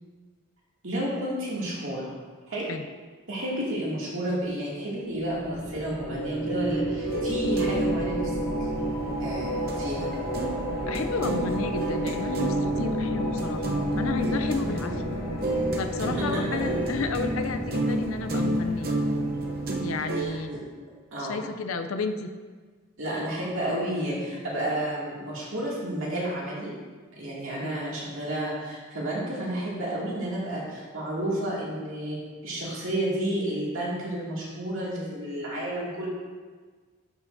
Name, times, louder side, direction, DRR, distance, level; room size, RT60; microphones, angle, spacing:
voice 1, 0.8-2.1 2.5-2.7 3.3-8.3 9.2-10.1 16.2-16.8 20.2-20.6 21.1-21.4 23.0-26.7 27.2-32.2 32.4-36.1, right 1 dB, 60° right, -6 dB, 2.4 m, -31 dB
sound 1, 5.1-20.6, right 1 dB, 15° left, 1.9 m, -31 dB
sound 2, 7.0-9.8 10.1-20.2, right 1 dB, 45° right, 0.7 m, -30 dB
voice 2, 10.9-15.2 15.8-19.0 19.8-20.6 21.2-22.3 27.6-27.8, left 4 dB, 65° left, 8 dB, 0.5 m, -32 dB
11.5 x 5.7 x 2.7 m, 1.5 s
head